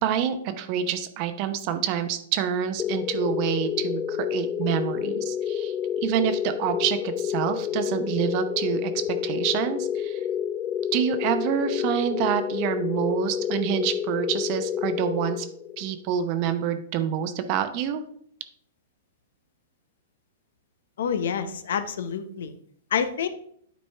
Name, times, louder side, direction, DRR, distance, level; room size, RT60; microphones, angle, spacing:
voice 1, 0.0-5.7 6.0-10.2 10.9-15.5 15.8-18.0, right 9 dB, 45° right, 9 dB, 0.8 m, -27 dB
sound 1, 2.8-15.9, left 9 dB, 25° left, 0.3 m, -29 dB
voice 2, 21.0-22.5 22.9-23.3, left 7 dB, 70° left, 11 dB, 0.6 m, -27 dB
9.3 x 4.2 x 3.4 m, 0.64 s
hypercardioid pair, 115°, 0 cm